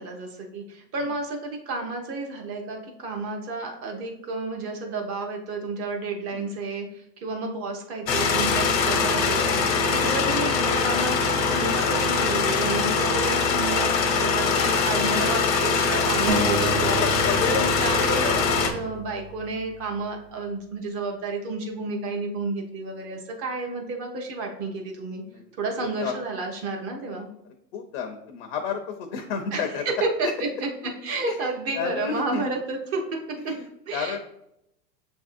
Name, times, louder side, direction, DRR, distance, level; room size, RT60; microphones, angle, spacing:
voice 1, 0.0-25.2 25.6-27.3 29.5-33.4 33.9-34.2, right 3 dB, 30° right, 2 dB, 0.7 m, -31 dB
sound 1, 8.1-18.7, left 5 dB, 85° left, 0.9 m, -22 dB
sound 2, 16.3-19.9, right 4 dB, 85° right, 0.8 m, -32 dB
voice 2, 25.8-26.1 27.7-30.0 31.3-32.4 33.4-34.2, left 6 dB, 50° left, 5 dB, 0.6 m, -32 dB
6.7 x 2.6 x 2.4 m, 0.82 s
hypercardioid pair, 125°, 49 cm